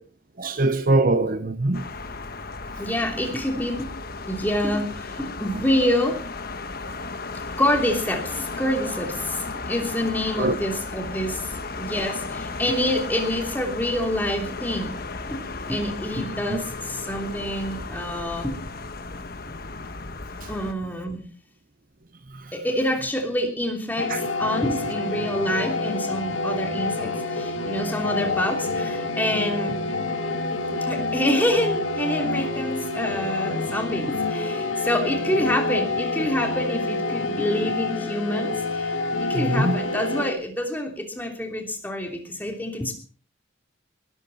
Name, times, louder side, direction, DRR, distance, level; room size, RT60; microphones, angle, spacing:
voice 1, 0.4-1.9 10.4-10.5 16.5-16.6 24.1-24.2 39.3-39.8, right 2 dB, 45° right, 0.8 m, -22 dB
sound 1, 1.7-20.7, left 3 dB, 50° left, 1.2 m, -35 dB
voice 2, 2.8-3.9 4.3-6.2 7.6-11.5 11.8-15.0 15.3-18.6 20.5-21.2 22.5-29.7 30.9-42.9, equal, 10° left, 3.1 m, -27 dB
sound 2, 24.0-40.3, left 3 dB, 80° left, 1.9 m, -27 dB
19.5 x 14.0 x 4.2 m
head